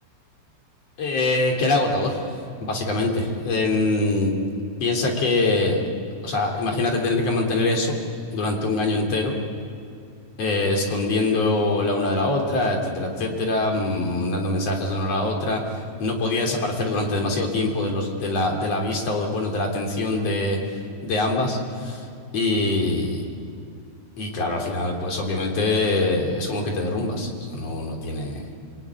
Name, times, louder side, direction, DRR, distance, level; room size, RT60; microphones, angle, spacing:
voice 1, 1.0-2.3 2.6-4.3 4.8-5.8 6.2-8.0 8.3-9.4 10.4-20.6 21.0-22.0 22.3-23.2 24.2-28.5, left 2 dB, 40° left, 1 dB, 3.9 m, -24 dB
27.0 x 21.5 x 9.8 m, 2.4 s
omnidirectional pair, 4.8 m